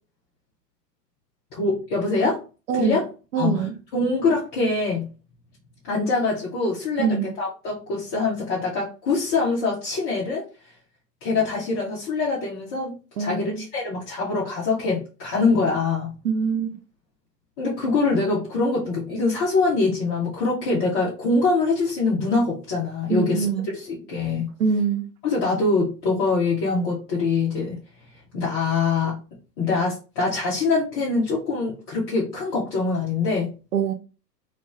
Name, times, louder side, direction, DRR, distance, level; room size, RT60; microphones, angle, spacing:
voice 1, 1.5-2.4 2.7-3.1 3.4-3.5 3.9-5.1 5.8-7.1 7.4-10.4 11.2-16.1 17.6-23.5 23.7-24.5 25.2-27.8 28.3-29.2 29.6-33.5, left 3 dB, 15° left, 0.4 m, -24 dB
voice 2, 2.7-3.0 3.3-3.8 7.0-7.3 13.2-13.7 16.2-16.8 23.1-23.7 24.6-25.1 33.7-33.9, right 6 dB, 55° right, 0.7 m, -24 dB
3.1 x 2.6 x 3.2 m
figure-of-eight pair, 110°, 50 cm